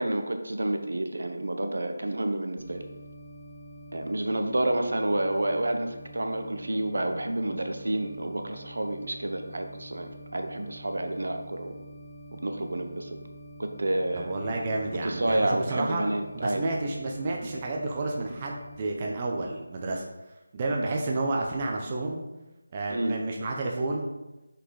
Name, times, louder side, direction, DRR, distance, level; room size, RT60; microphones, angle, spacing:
voice 1, 0.0-2.8 3.9-11.7 12.3-13.2 13.6-14.3 15.0-16.6 22.9-23.2, right 1 dB, 75° right, 6 dB, 0.9 m, -29 dB
sound 1, 2.6-18.8, right 1 dB, 5° right, 1.0 m, -46 dB
voice 2, 14.2-16.0 16.3-20.0 20.5-22.2 22.7-24.1, right 2 dB, 20° right, 0 dB, 0.6 m, -30 dB
6.1 x 5.4 x 3.9 m, 1.0 s
figure-of-eight pair, 175°, 0 cm